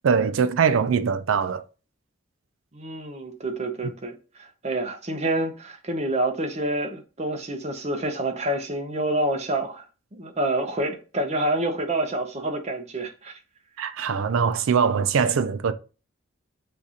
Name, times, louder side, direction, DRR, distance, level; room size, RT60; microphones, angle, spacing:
voice 1, 0.0-1.6 13.8-15.7, right 6 dB, 75° right, 0.4 m, -22 dB
voice 2, 2.7-9.8 10.1-13.4, right 1 dB, 30° right, 0.6 m, -28 dB
6.4 x 2.4 x 2.8 m
head